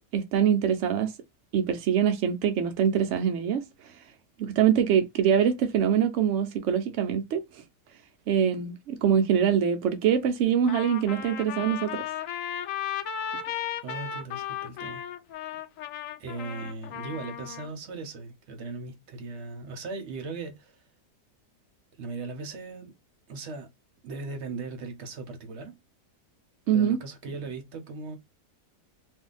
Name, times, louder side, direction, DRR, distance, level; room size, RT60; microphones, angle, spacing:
voice 1, 0.1-1.1 1.5-3.6 4.4-7.4 8.3-12.0 26.7-27.0, right 8 dB, 85° right, 0.6 m, -24 dB
Trumpet, 10.7-17.7, left 9 dB, 70° left, 0.8 m, -35 dB
voice 2, 13.8-15.0 16.2-20.8 22.0-22.9 23.3-23.7 24.0-25.7 26.7-28.2, right 4 dB, 55° right, 0.8 m, -38 dB
2.7 x 2.4 x 3.7 m
omnidirectional pair, 1.8 m